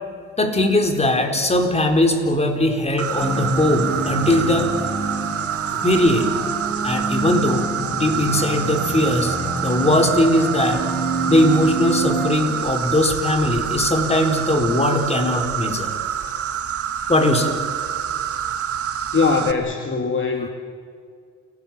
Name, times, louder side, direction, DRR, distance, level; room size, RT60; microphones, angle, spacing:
voice 1, 0.4-4.7 5.8-6.5 6.8-10.8 11.3-15.9 17.1-17.5, left 1 dB, 20° left, 4 dB, 4.3 m, -19 dB
Insect, 3.0-19.5, right 9 dB, 50° right, 1.7 m, -27 dB
sound 1, 3.2-12.3, right 3 dB, 5° left, 6.9 m, -28 dB
voice 2, 19.1-20.5, left 4 dB, 40° left, 4 dB, 2.2 m, -21 dB
29.0 x 18.5 x 7.8 m, 2.1 s
cardioid pair, 90°, 30 cm